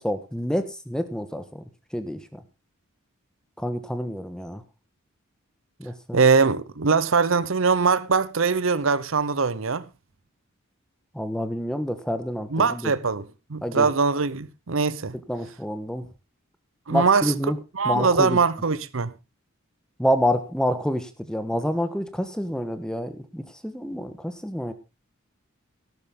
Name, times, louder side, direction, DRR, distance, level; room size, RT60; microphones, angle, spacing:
voice 1, 0.0-1.6 1.9-2.4 3.6-4.6 5.8-6.2 11.1-12.9 13.6-13.9 15.3-16.0 16.9-17.6 17.8-18.4 20.0-24.7, equal, 5° left, 1.3 m, -28 dB
voice 2, 6.1-9.9 12.5-15.2 16.9-17.3 17.7-19.1, right 5 dB, 65° right, 0.8 m, -22 dB
13.0 x 12.0 x 3.7 m
head